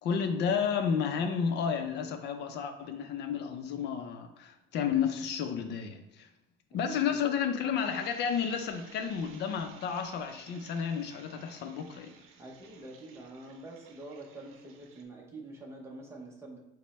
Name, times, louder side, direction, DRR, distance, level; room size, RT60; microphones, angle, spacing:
voice 1, 0.0-6.3 6.7-12.1, left 7 dB, 55° left, 7 dB, 0.6 m, -31 dB
voice 2, 6.8-7.2 12.4-16.6, right 2 dB, 15° right, -1 dB, 0.7 m, -46 dB
sound 1, 7.8-15.0, right 6 dB, 85° right, 0.7 m, -56 dB
5.2 x 2.2 x 4.1 m, 0.96 s
cardioid pair, 165°, 21 cm